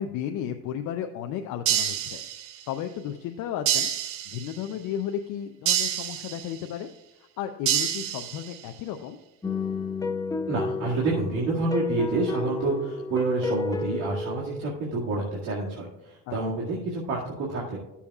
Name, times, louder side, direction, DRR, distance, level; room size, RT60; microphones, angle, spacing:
voice 1, 0.0-2.2 2.7-3.9 4.3-6.9 7.2-9.2 16.3-16.6, left 9 dB, 65° left, 5 dB, 0.6 m, -34 dB
sound 1, 1.7-2.7 3.7-4.7 5.7-6.7 7.7-8.7, right 10 dB, 85° right, 0.8 m, -28 dB
sound 2, 9.4-14.7, left 3 dB, 10° left, 0.5 m, -31 dB
voice 2, 10.5-17.8, right 3 dB, 60° right, -6 dB, 2.1 m, -28 dB
14.0 x 7.0 x 2.4 m, 0.93 s
cardioid pair, 115°, 33 cm